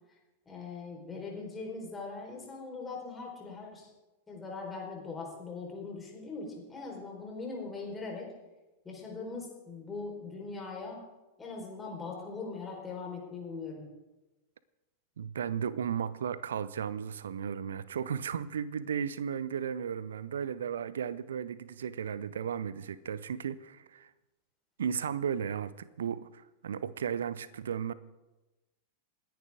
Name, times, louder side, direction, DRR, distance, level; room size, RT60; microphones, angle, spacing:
voice 1, 0.5-3.9 4.3-8.3 8.8-11.0 11.4-13.8, left 4 dB, 15° left, 4.5 m, -41 dB
voice 2, 15.2-24.1 24.8-27.9, right 8 dB, 65° right, 0.7 m, -35 dB
28.5 x 10.5 x 3.7 m
figure-of-eight pair, 90°, 0 cm